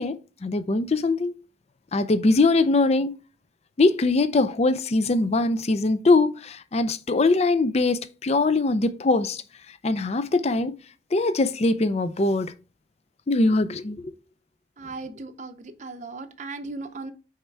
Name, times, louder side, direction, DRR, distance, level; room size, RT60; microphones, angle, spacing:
voice 1, 0.0-1.3 1.9-3.1 3.8-9.4 9.8-10.7 11.1-12.5 13.3-14.1, left 3 dB, 35° left, 0.4 m, -22 dB
voice 2, 14.8-17.1, right 3 dB, 40° right, 0.6 m, -37 dB
5.7 x 4.3 x 4.5 m
head